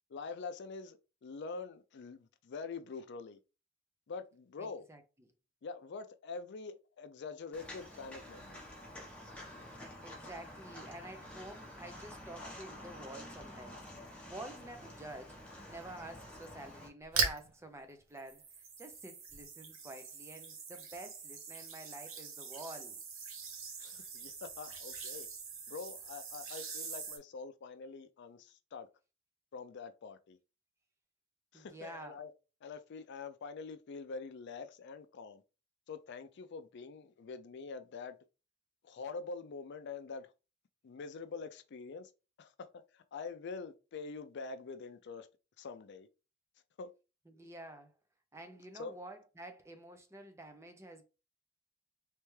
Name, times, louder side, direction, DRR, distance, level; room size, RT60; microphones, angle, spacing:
voice 1, 0.1-3.4 4.1-4.8 5.6-8.6 23.8-25.3 25.7-28.9 29.5-30.4 31.5-32.3 32.6-35.4 35.9-38.2 38.8-40.3 40.8-42.1 42.4-45.3 45.6-46.1 46.8-46.9 48.7-48.9, left 4 dB, 60° left, 0.4 m, -45 dB
voice 2, 4.6-5.3 10.0-15.4 15.7-18.5 18.8-23.0 31.5-32.2 47.3-47.9 48.3-51.0, right 1 dB, 15° right, 0.6 m, -49 dB
Walk footsteps, 7.5-16.9, left 1 dB, 5° left, 1.0 m, -49 dB
sound 1, 17.0-17.5 18.2-27.2, right 5 dB, 70° right, 1.0 m, -41 dB
3.3 x 3.3 x 3.2 m
head